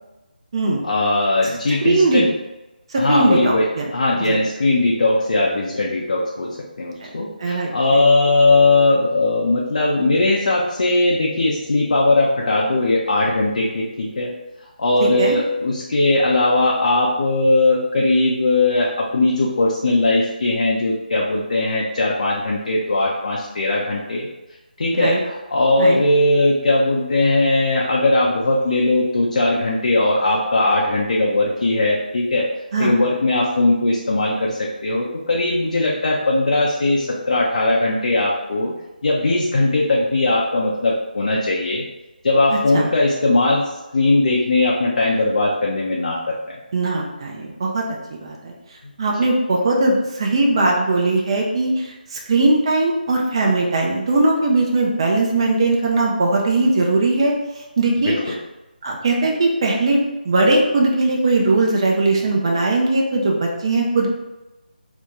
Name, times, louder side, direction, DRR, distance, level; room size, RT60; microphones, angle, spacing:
voice 1, 0.8-2.3 3.0-14.3 14.8-24.3 24.8-32.5 32.8-38.7 39.0-41.8 42.2-46.6 58.0-58.4, left 2 dB, 50° left, -3 dB, 0.4 m, -19 dB
voice 2, 1.4-2.2 2.9-3.9 4.3-4.4 7.0-7.1 7.4-8.0 15.0-15.4 24.9-25.2 25.8-26.0 32.7-33.0 42.5-42.9 46.7-47.8 48.1-48.5 49.0-58.3 58.8-64.1, right 2 dB, 30° right, -2 dB, 0.4 m, -19 dB
2.7 x 2.1 x 3.6 m, 1.0 s
figure-of-eight pair, 155°, 5 cm